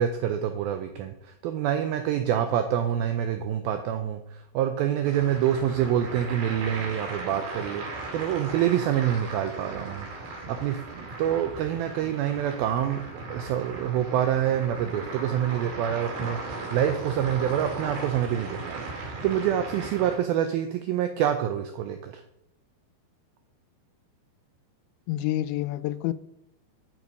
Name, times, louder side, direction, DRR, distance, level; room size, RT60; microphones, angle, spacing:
voice 1, 0.0-22.2, right 10 dB, 90° right, 2.1 m, -27 dB
sound 1, 5.0-20.1, right 2 dB, 70° right, 4.5 m, -37 dB
voice 2, 25.1-26.1, left 14 dB, 85° left, 2.8 m, -28 dB
12.0 x 6.2 x 5.3 m
omnidirectional pair, 5.1 m